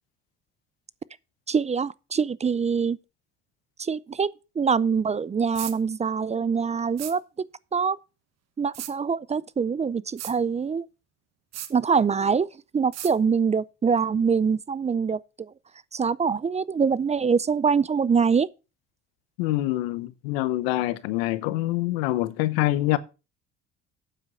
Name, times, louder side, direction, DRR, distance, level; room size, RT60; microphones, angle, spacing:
voice 1, 1.5-3.0 3.8-7.2 7.7-8.0 8.6-10.9 11.7-12.5 12.7-15.5 15.9-18.5, right 6 dB, 25° right, 0.5 m, -24 dB
sound 1, 5.6-5.8 7.0-7.2 8.7-8.9 10.2-10.4 11.5-11.7 12.9-13.1, right 12 dB, 60° right, 1.3 m, -35 dB
voice 2, 19.4-23.0, left 17 dB, 85° left, 0.9 m, -25 dB
9.0 x 7.4 x 5.4 m
supercardioid pair, 70°, 29 cm